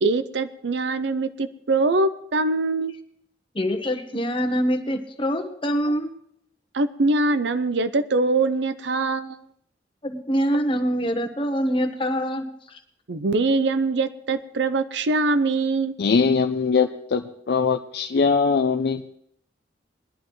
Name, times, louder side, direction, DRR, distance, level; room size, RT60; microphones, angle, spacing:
voice 1, 0.0-2.9 6.7-9.4 13.1-15.9, right 3 dB, 75° right, 11 dB, 0.6 m, -23 dB
voice 2, 3.5-6.1 10.0-12.4, equal, 30° left, 5 dB, 1.2 m, -24 dB
voice 3, 16.0-19.0, left 5 dB, 60° left, 6 dB, 0.5 m, -21 dB
20.5 x 11.0 x 3.2 m, 0.71 s
head